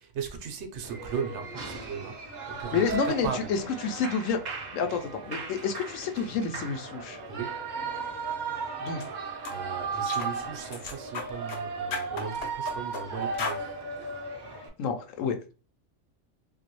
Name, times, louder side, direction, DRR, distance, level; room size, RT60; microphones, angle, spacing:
voice 1, 0.0-3.5 7.3-7.6 9.5-13.7, right 6 dB, 65° right, 0.9 m, -37 dB
Shout / Cheering, 0.8-14.7, right 4 dB, 50° right, 0.6 m, -36 dB
voice 2, 2.7-4.4 4.7-7.2 8.8-9.0 14.5-15.4, left 5 dB, 80° left, 1.0 m, -29 dB
sound 1, 8.9-9.1 9.4-9.6 10.1-10.3 10.7-11.6 11.9-13.0 13.4-13.6, left 4 dB, 60° left, 0.7 m, -35 dB
2.9 x 2.6 x 2.9 m
omnidirectional pair, 1.4 m